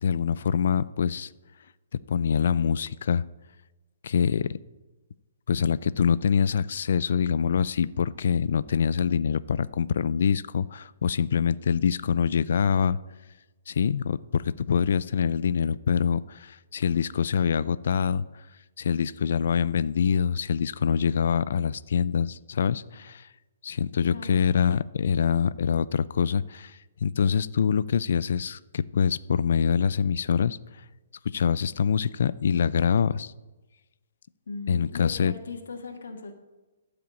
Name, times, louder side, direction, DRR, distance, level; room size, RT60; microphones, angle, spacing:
voice 1, 0.0-1.3 2.1-3.2 4.0-4.6 5.5-13.0 13.7-18.4 18.8-23.3 23.6-30.6 31.2-33.3 34.7-35.3, left 7 dB, 55° left, 17 dB, 0.4 m, -25 dB
voice 2, 24.1-24.5 34.5-36.3, left 4 dB, 85° left, 2 dB, 1.5 m, -38 dB
12.5 x 5.0 x 8.4 m, 1.1 s
hypercardioid pair, 170°, 0 cm